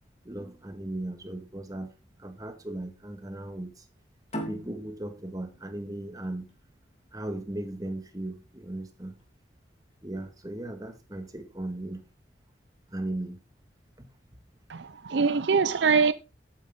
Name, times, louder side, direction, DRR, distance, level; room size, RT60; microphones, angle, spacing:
voice 1, 0.2-3.9 4.5-6.5 7.1-9.1 10.0-12.0 12.9-13.4 14.0-14.1, right 1 dB, 20° right, 1.7 m, -37 dB
sound 1, 4.3-7.5, equal, 35° left, 3.0 m, -40 dB
voice 2, 14.7-16.1, right 5 dB, 70° right, 0.5 m, -23 dB
11.5 x 9.2 x 3.7 m
head